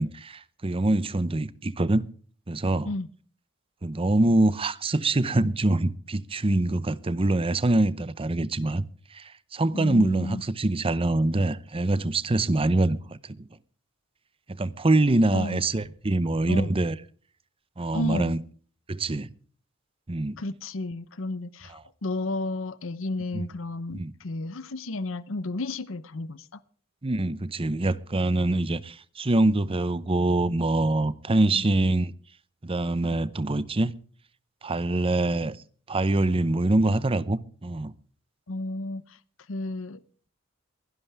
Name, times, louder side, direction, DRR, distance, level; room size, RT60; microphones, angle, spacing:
voice 1, 0.0-2.0 2.5-2.9 3.8-8.9 9.1-13.5 14.5-16.9 17.8-18.4 18.9-19.3 20.1-20.4 23.3-23.5 23.9-24.1 27.0-32.1 32.6-33.9 34.6-35.6 35.9-37.9, right 2 dB, 25° right, 0.7 m, -24 dB
voice 2, 9.7-10.4 15.3-15.6 16.4-16.7 17.9-18.3 20.4-26.6 31.5-31.7 38.5-39.2 39.5-40.0, left 2 dB, 70° left, 0.8 m, -32 dB
22.5 x 11.5 x 3.5 m
head